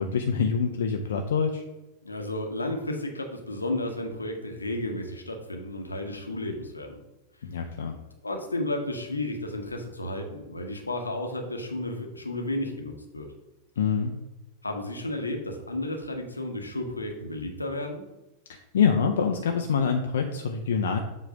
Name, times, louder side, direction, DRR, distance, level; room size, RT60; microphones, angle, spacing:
voice 1, 0.0-1.6 7.4-8.0 13.8-14.2 18.5-21.0, left 6 dB, 65° left, 3 dB, 0.6 m, -25 dB
voice 2, 2.0-7.0 8.2-13.3 14.6-18.0, left 1 dB, 80° left, 3 dB, 1.0 m, -32 dB
7.5 x 3.2 x 4.9 m, 1.0 s
figure-of-eight pair, 90°, 0 cm